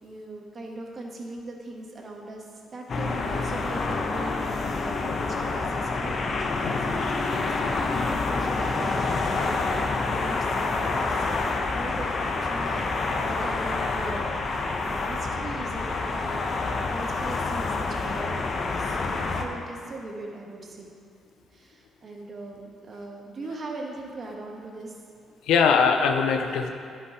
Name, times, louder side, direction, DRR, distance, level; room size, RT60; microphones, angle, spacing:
voice 1, 0.0-19.0 19.3-20.9 21.4-25.0, right 2 dB, 40° right, 0 dB, 1.4 m, -40 dB
sound 1, 2.9-19.4, left 3 dB, 50° left, 0.9 m, -27 dB
voice 2, 25.4-26.7, left 6 dB, 90° left, 4 dB, 0.5 m, -22 dB
11.0 x 5.5 x 4.8 m, 2.3 s
cardioid pair, 90°, 0 cm